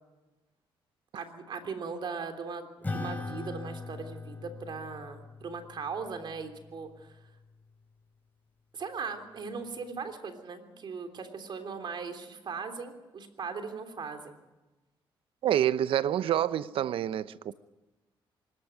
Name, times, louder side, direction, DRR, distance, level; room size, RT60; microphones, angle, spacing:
voice 1, 1.1-2.7 2.9-7.2 8.7-14.4, right 5 dB, 55° right, 3.3 m, -39 dB
Acoustic guitar / Strum, 2.8-7.6, left 3 dB, 20° left, 4.6 m, -41 dB
voice 2, 15.4-17.5, right 11 dB, 75° right, 0.8 m, -27 dB
24.5 x 14.0 x 9.5 m
cardioid pair, 85°, 9 cm